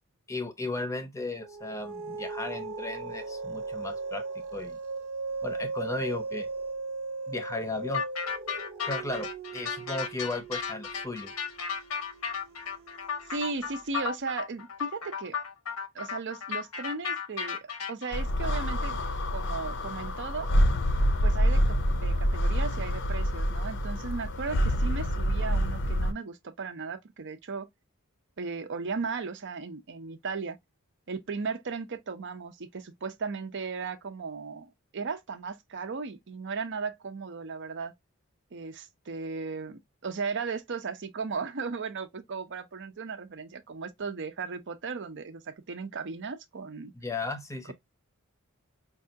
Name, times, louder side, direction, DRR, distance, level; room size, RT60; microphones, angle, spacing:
voice 1, 0.3-4.2 4.5-4.8 5.4-6.5 7.3-8.0 8.9-11.3 47.0-47.7, left 2 dB, 15° left, 0.7 m, -35 dB
sound 1, 1.4-14.2, right 3 dB, 75° right, 1.0 m, -38 dB
sound 2, 7.9-18.2, left 6 dB, 90° left, 0.9 m, -34 dB
voice 2, 13.3-15.4 15.9-19.0 19.3-20.5 21.2-27.7 28.4-30.6 31.1-37.9 38.5-46.9, right 4 dB, 55° right, 0.6 m, -36 dB
sound 3, 18.1-26.1, equal, 55° left, 0.6 m, -27 dB
5.4 x 2.4 x 2.7 m
head